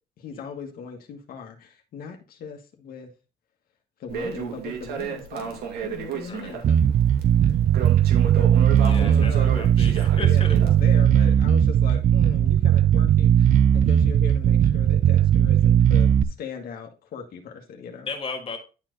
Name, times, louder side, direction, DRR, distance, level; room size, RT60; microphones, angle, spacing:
voice 1, 0.2-3.1 4.0-6.8 8.4-9.7 10.2-18.1, left 6 dB, 60° left, 3 dB, 1.6 m, -38 dB
Crackle, 4.1-11.0, right 7 dB, 70° right, 2.3 m, -33 dB
Bass guitar, 6.6-16.2, right 9 dB, 50° right, 0.6 m, -18 dB
voice 2, 8.8-10.6 13.9-14.0 18.0-18.6, left 4 dB, 35° left, 4 dB, 1.9 m, -35 dB
11.0 x 4.4 x 3.9 m, 0.32 s
cardioid pair, 110°, 17 cm